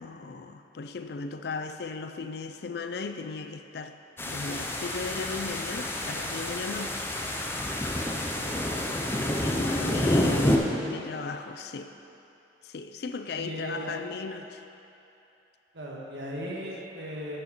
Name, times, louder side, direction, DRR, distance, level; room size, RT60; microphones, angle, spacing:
voice 1, 0.0-4.0 4.3-7.1 9.4-10.6 10.9-11.9 12.6-14.6, left 4 dB, 60° left, 8 dB, 0.4 m, -37 dB
sound 1, 4.2-10.6, left 1 dB, 15° left, 0.6 m, -28 dB
voice 2, 8.4-9.1 9.9-10.5 13.3-13.9 15.7-17.4, equal, 70° right, -3 dB, 1.6 m, -38 dB
10.5 x 6.8 x 4.4 m, 2.9 s
head